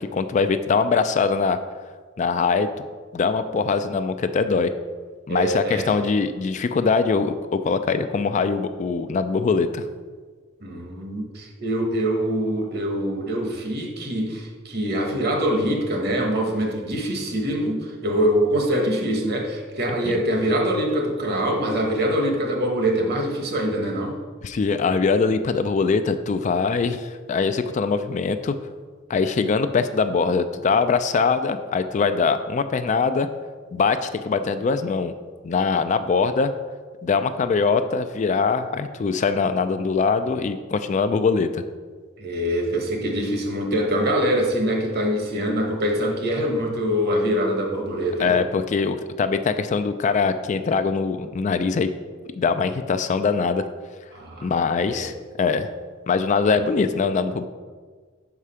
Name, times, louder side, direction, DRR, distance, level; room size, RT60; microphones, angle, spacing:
voice 1, 0.0-1.6 2.2-2.7 3.1-4.7 5.3-9.9 24.4-28.5 29.1-33.3 33.7-35.1 35.4-36.5 37.0-41.6 48.2-51.9 52.4-53.6 54.4-55.1 55.4-55.7 56.1-57.5, left 5 dB, 40° left, 10 dB, 0.3 m, -22 dB
voice 2, 5.3-5.9 10.6-24.2 42.2-48.3 54.1-54.5 54.9-55.1, equal, 55° right, 1 dB, 1.2 m, -24 dB
5.8 x 4.9 x 5.6 m, 1.5 s
head